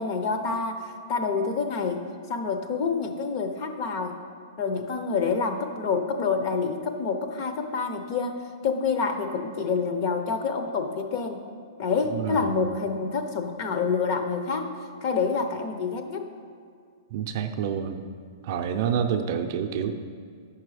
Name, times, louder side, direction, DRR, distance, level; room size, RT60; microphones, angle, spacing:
voice 1, 0.0-2.0 2.3-4.2 4.6-8.4 8.6-11.4 11.8-14.7 15.0-16.3, left 5 dB, 35° left, 6 dB, 0.7 m, -27 dB
voice 2, 12.1-12.6 17.1-18.0 18.4-19.9, right 8 dB, 45° right, 6 dB, 0.5 m, -28 dB
8.4 x 5.9 x 4.8 m, 2.1 s
hypercardioid pair, 165°, 2 cm